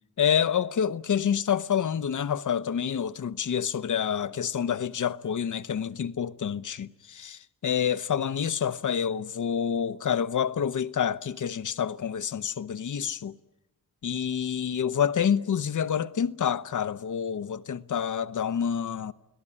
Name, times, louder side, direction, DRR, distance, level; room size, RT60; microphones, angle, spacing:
voice 1, 0.2-13.4 14.0-19.1, left 8 dB, 65° left, 0.8 m, -28 dB
29.5 x 18.0 x 9.9 m
wide cardioid pair, 100°, 33 cm